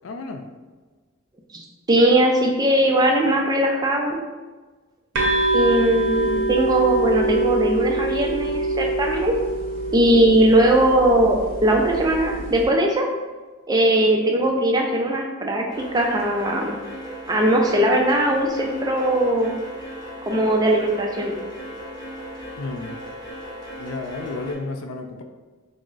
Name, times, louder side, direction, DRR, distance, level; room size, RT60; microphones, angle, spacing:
voice 1, 0.0-0.4 22.6-23.0 23.8-25.2, left 3 dB, 70° left, 5 dB, 0.4 m, -32 dB
voice 2, 1.5-4.2 5.5-9.3 9.9-13.1 13.7-16.8 17.3-19.5 20.3-21.4, right 1 dB, 20° right, 1 dB, 0.3 m, -19 dB
sound 1, 5.1-12.6, right 2 dB, 60° right, 0.7 m, -25 dB
sound 2, 15.7-24.5, equal, 20° left, 0.9 m, -37 dB
3.5 x 2.0 x 3.8 m, 1.3 s
head